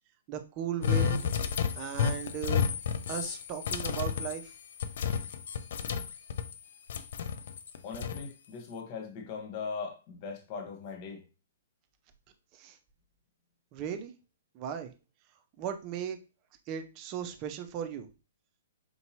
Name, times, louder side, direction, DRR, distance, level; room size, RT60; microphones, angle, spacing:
voice 1, 0.3-1.2 1.7-2.7 3.1-4.5 12.5-12.8 13.7-14.1 14.5-14.9 15.6-16.2 16.7-18.1, right 9 dB, 35° right, 0.6 m, -37 dB
sound 1, 0.8-6.6 6.9-8.3, left 7 dB, 60° left, 0.4 m, -31 dB
voice 2, 7.8-11.2, left 5 dB, 40° left, 1.1 m, -40 dB
4.4 x 2.8 x 2.8 m
hypercardioid pair, 120°, 0 cm